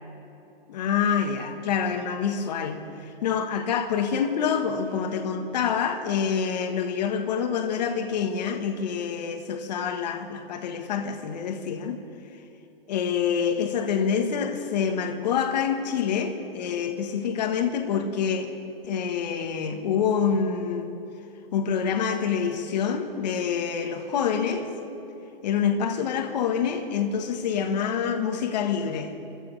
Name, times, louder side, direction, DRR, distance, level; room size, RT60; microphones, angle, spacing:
voice 1, 0.7-12.0 12.9-18.5 18.8-21.0 21.5-24.7 25.4-29.2, left 7 dB, 45° left, 6 dB, 1.5 m, -26 dB
28.5 x 14.5 x 3.3 m, 2.8 s
hypercardioid pair, 150°, 29 cm